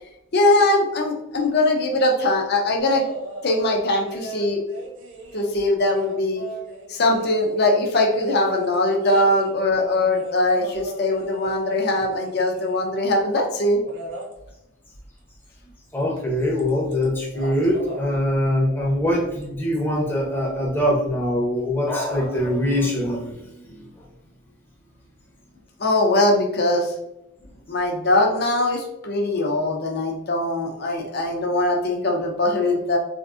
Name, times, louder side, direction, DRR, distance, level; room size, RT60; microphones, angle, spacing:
voice 1, 0.3-3.0 3.4-4.6 5.3-6.4 6.9-13.8 25.8-26.9 27.7-33.0, left 2 dB, 50° left, 1 dB, 0.6 m, -21 dB
sound 1, 2.8-3.7 4.0-7.6 8.1-13.0 13.8-14.3 16.2-16.3 16.6-17.0 17.3-18.0 19.4-19.5, right 2 dB, 60° right, 0.7 m, -38 dB
voice 2, 15.9-24.0, left 1 dB, 10° left, -3 dB, 0.6 m, -23 dB
3.5 x 2.5 x 2.4 m, 0.88 s
head